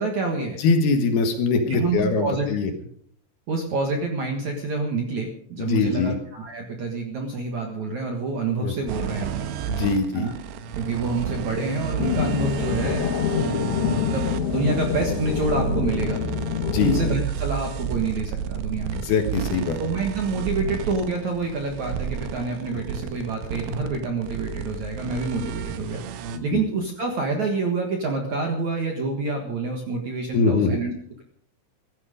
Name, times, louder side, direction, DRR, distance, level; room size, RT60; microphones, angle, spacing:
voice 1, 0.0-0.6 1.7-2.5 3.5-9.5 10.1-10.3 10.7-16.2 16.7-19.0 19.8-30.9, right 3 dB, 55° right, 3 dB, 2.1 m, -27 dB
voice 2, 0.6-2.7 5.6-6.1 8.6-8.7 9.7-10.2 16.7-17.0 18.9-19.8 22.7-22.8 25.4-25.5 26.3-26.6 30.3-30.8, left 4 dB, 65° left, 6 dB, 3.1 m, -22 dB
sound 1, 8.9-26.4, right 8 dB, 75° right, 2.9 m, -32 dB
sound 2, 12.0-17.2, left 8 dB, 90° left, 4.1 m, -26 dB
16.0 x 13.5 x 5.1 m, 0.62 s
omnidirectional pair, 5.4 m